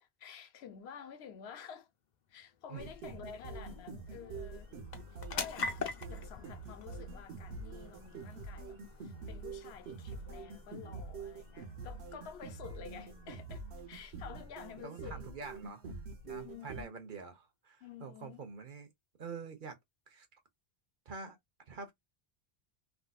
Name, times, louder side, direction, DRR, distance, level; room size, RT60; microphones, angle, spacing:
voice 1, 0.0-1.9 2.3-4.7 5.1-5.8 6.1-15.2 16.3-17.0 17.8-18.5, left 7 dB, 85° left, 0.9 m, -50 dB
sound 1, 1.9-16.8, left 4 dB, 50° left, 0.7 m, -47 dB
sound 2, 2.8-16.8, right 3 dB, 90° right, 1.2 m, -46 dB
voice 2, 12.8-13.4 14.8-18.9 19.2-19.8 20.1-20.3 21.1-21.4 21.7-21.9, right 5 dB, 55° right, 0.9 m, -46 dB
3.5 x 2.6 x 2.2 m
omnidirectional pair, 1.1 m